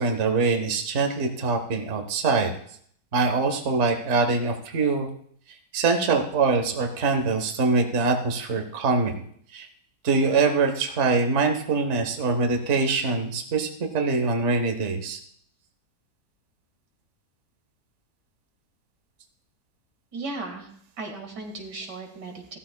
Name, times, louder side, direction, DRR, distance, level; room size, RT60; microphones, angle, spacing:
voice 1, 0.0-2.5 3.1-5.1 5.7-9.1 9.5-9.7 10.0-15.2, right 4 dB, 45° right, 4 dB, 1.4 m, -23 dB
voice 2, 20.1-20.6 21.0-22.6, right 3 dB, 85° right, 2 dB, 2.6 m, -36 dB
16.5 x 13.0 x 2.3 m, 0.64 s
omnidirectional pair, 1.8 m